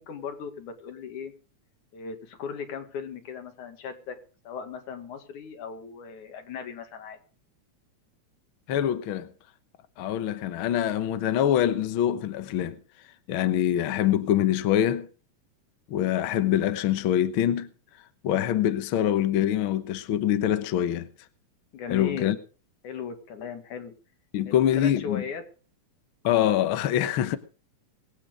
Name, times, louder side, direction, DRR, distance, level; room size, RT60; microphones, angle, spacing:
voice 1, 0.0-1.3 1.9-4.2 4.4-7.2 21.7-22.4 22.8-23.9 24.5-25.4, left 7 dB, 80° left, 3.4 m, -37 dB
voice 2, 8.7-9.3 10.0-12.8 13.3-15.1 15.9-17.7 18.2-21.1 21.9-22.4 24.3-25.2 26.2-27.4, left 11 dB, 60° left, 1.4 m, -24 dB
21.5 x 8.8 x 5.1 m
omnidirectional pair, 3.4 m